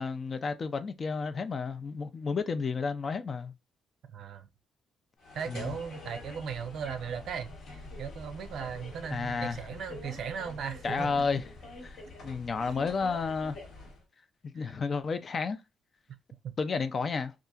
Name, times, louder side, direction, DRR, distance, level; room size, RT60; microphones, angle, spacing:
voice 1, 0.0-3.5 5.5-5.8 9.1-9.6 10.8-11.4 11.8-12.0 12.2-13.6 14.4-15.6 16.6-17.3, left 5 dB, 45° left, 0.4 m, -31 dB
voice 2, 4.1-4.5 5.3-11.1 12.6-12.8 14.5-14.7 16.4-16.5, right 7 dB, 70° right, 0.5 m, -37 dB
sound 1, 5.2-14.0, left 2 dB, 70° left, 1.0 m, -46 dB
2.7 x 2.4 x 2.3 m
cardioid pair, 90°, 0 cm